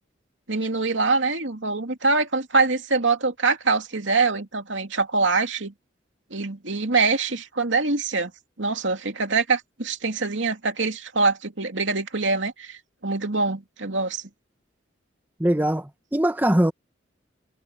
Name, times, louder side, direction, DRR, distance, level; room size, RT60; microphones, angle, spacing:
voice 1, 0.5-5.7 6.3-8.3 8.6-14.2, right 3 dB, 75° right, 2.7 m, -24 dB
voice 2, 15.4-16.7, right 1 dB, 10° right, 1.0 m, -21 dB
head